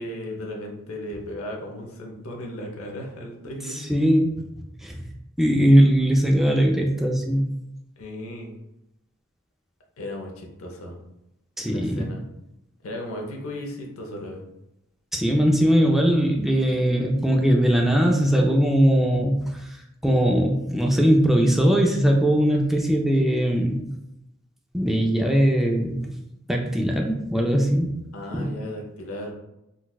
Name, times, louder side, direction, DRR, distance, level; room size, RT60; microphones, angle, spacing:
voice 1, 0.0-3.8 8.0-8.5 10.0-11.0 11.7-12.2 12.8-14.4 28.1-29.3, left 1 dB, 85° left, 1 dB, 0.7 m, -35 dB
voice 2, 3.7-4.4 4.8-5.0 5.4-7.5 11.6-12.1 15.1-19.8 20.0-23.9 24.7-26.2 26.5-28.0 28.3-28.5, equal, ahead, 1 dB, 0.3 m, -20 dB
3.9 x 2.3 x 2.3 m, 0.88 s
head